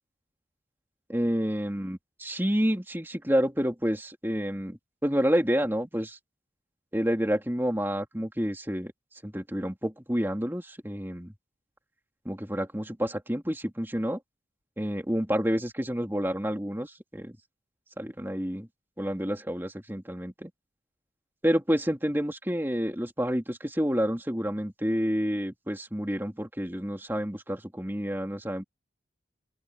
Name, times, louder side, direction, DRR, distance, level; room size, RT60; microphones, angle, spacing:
voice 1, 1.1-6.2 6.9-8.9 9.2-11.3 12.2-14.2 14.8-17.4 18.0-18.7 19.0-20.5 21.4-28.6, equal, 10° right, 2.9 m, -29 dB
open air
head